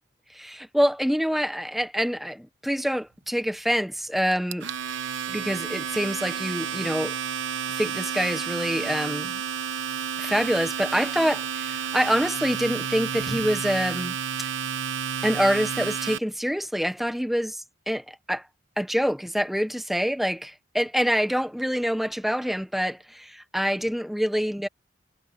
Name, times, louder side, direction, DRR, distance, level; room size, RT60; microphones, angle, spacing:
voice 1, 0.3-4.7 5.3-7.1 7.7-9.4 10.2-14.5 15.2-18.5 18.8-24.7, equal, ahead, 0.8 m, -26 dB
Domestic sounds home sounds, 4.3-16.2, right 7 dB, 80° right, 1.0 m, -31 dB
head